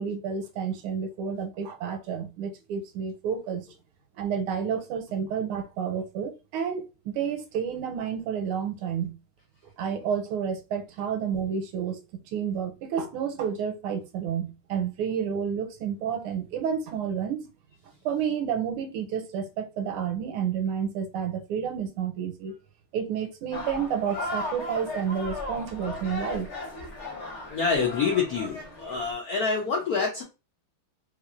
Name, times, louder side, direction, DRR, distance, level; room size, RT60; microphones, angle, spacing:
voice 1, 0.0-3.6 4.2-9.2 9.8-17.5 18.0-22.6 22.9-26.5, right 7 dB, 85° right, 1.5 m, -30 dB
sound 1, 23.5-29.1, left 2 dB, 40° left, 1.2 m, -36 dB
voice 2, 27.5-30.2, left 5 dB, 75° left, 0.8 m, -26 dB
3.2 x 3.2 x 2.4 m
omnidirectional pair, 2.4 m